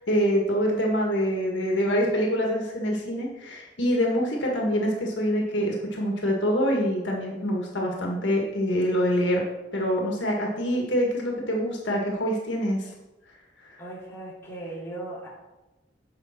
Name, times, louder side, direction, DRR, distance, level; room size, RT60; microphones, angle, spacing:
voice 1, 0.0-9.4 9.7-12.9 13.7-13.8, equal, 75° left, -1 dB, 1.8 m, -25 dB
voice 2, 13.8-15.3, right 2 dB, 15° left, -7 dB, 3.1 m, -37 dB
8.2 x 5.3 x 5.9 m, 1.0 s
head